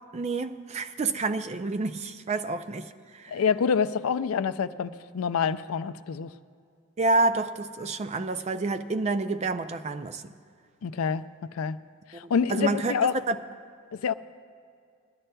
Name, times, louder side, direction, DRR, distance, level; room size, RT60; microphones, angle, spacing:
voice 1, 0.1-3.4 7.0-10.2 12.1-12.2 12.5-13.4, right 3 dB, 30° right, 0.4 m, -28 dB
voice 2, 3.3-6.3 10.8-11.8 12.1-13.1 13.9-14.1, left 6 dB, 75° left, 0.4 m, -27 dB
22.0 x 11.5 x 2.2 m
head